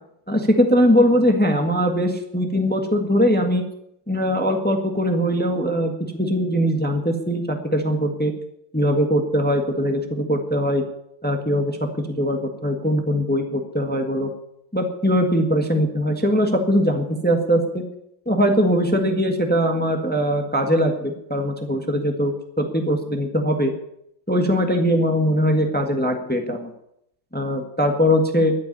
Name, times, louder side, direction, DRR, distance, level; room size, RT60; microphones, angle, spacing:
voice 1, 0.3-3.6 4.1-8.3 8.7-10.8 11.2-11.8 12.1-14.3 14.7-17.8 18.2-23.7 24.3-26.7 27.3-28.5, equal, 5° left, 4 dB, 1.3 m, -21 dB
12.5 x 8.3 x 9.9 m, 0.77 s
omnidirectional pair, 2.1 m